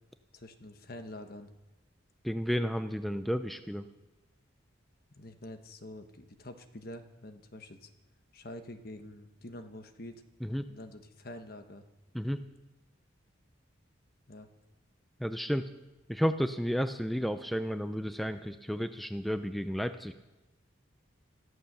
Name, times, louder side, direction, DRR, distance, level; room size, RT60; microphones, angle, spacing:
voice 1, 0.3-1.5 5.2-7.9 8.3-10.2 10.7-11.8 14.3-14.5, left 1 dB, 45° left, 8 dB, 1.2 m, -46 dB
voice 2, 2.2-3.8 10.4-10.7 12.1-12.4 15.2-15.7 16.1-20.1, equal, ahead, 9 dB, 0.4 m, -32 dB
14.5 x 14.5 x 6.7 m, 1.0 s
head